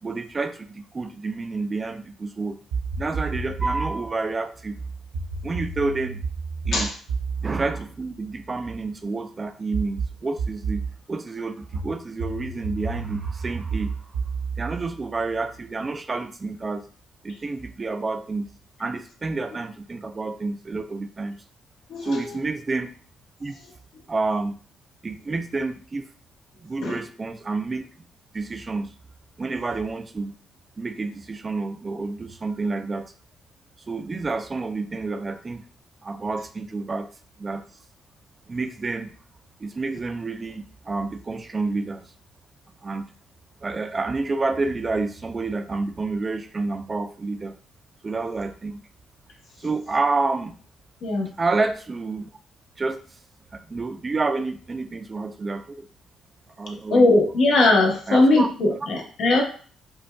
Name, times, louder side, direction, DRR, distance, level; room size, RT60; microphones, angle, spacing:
voice 1, 0.0-2.6 3.0-4.7 5.4-6.2 6.7-6.9 7.4-10.8 11.1-14.0 14.6-16.8 17.2-18.5 18.8-21.4 22.0-22.9 23.4-23.5 24.1-24.6 25.0-26.1 26.6-27.9 28.3-28.9 29.4-30.3 30.8-33.1 33.9-35.6 36.0-37.1 37.4-37.6 38.5-39.1 39.6-42.0 42.8-43.1 43.6-47.5 48.0-48.8 49.6-50.5 51.4-52.3 52.8-53.0 53.5-55.9 56.6-57.1 58.1-58.5, right 3 dB, 30° right, 8 dB, 0.4 m, -29 dB
sound 1, 2.7-4.0 5.1-8.8 9.7-11.0 11.7-15.7, right 4 dB, 90° right, 0.7 m, -31 dB
voice 2, 21.9-22.3 26.8-27.0 51.0-51.3 56.9-59.4, left 2 dB, 70° left, 1 dB, 1.0 m, -19 dB
5.0 x 2.3 x 2.2 m, 0.43 s
cardioid pair, 90°, 0 cm